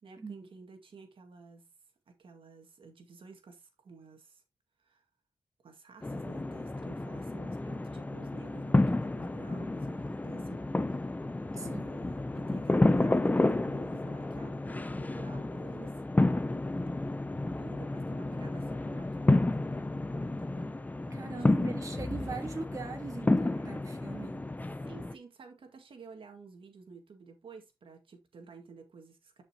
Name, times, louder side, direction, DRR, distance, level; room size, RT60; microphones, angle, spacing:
voice 1, 0.0-1.7 2.1-4.4 4.8-5.0 5.6-10.7 11.0-11.1 11.5-16.0 17.6-22.1 24.8-29.4, right 4 dB, 65° right, 2.0 m, -52 dB
sound 1, 6.0-25.1, left 2 dB, 15° left, 0.6 m, -31 dB
voice 2, 11.6-12.0 21.1-24.4, right 4 dB, 35° right, 1.7 m, -40 dB
10.5 x 5.4 x 2.9 m
wide cardioid pair, 95°, 10 cm